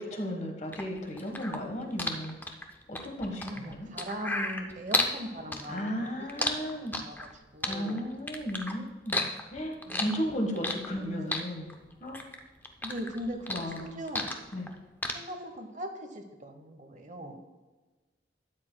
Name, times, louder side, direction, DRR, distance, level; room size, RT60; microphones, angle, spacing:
voice 1, 0.0-2.3 2.9-3.9 5.7-6.9 7.6-11.7 12.0-12.2 13.5-14.0 14.5-14.7, equal, 40° left, 3 dB, 1.4 m, -35 dB
sound 1, 0.7-5.2 5.5-7.3 7.6-8.7 9.1-11.0 11.3-12.4 12.6-14.7 15.0-15.1, left 2 dB, 10° left, 0.6 m, -32 dB
voice 2, 3.3-8.1 9.9-10.2 10.5-10.6 11.0-11.3 11.6-11.8 12.8-14.3 15.1-17.4, equal, 40° right, 5 dB, 1.0 m, -40 dB
12.5 x 9.5 x 2.2 m, 1.3 s
head